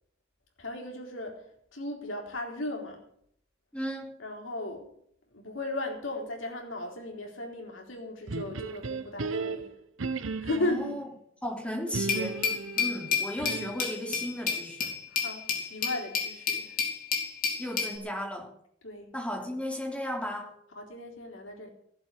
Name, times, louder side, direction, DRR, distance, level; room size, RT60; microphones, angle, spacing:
voice 1, 0.6-1.4 1.7-3.0 4.2-4.9 5.3-9.7 10.4-10.8 14.8-16.7 18.8-19.1 20.8-21.7, left 2 dB, 75° left, 1 dB, 3.9 m, -36 dB
voice 2, 3.7-4.2 10.6-11.0 11.4-12.5 12.8-14.8 17.6-18.5 19.1-20.5, equal, 5° left, 0 dB, 3.7 m, -35 dB
sound 1, 8.3-11.1 11.9-13.9, right 4 dB, 85° right, 0.9 m, -35 dB
Glass, 12.1-18.0, left 6 dB, 45° left, 4.2 m, -31 dB
16.5 x 7.9 x 8.5 m, 0.71 s
head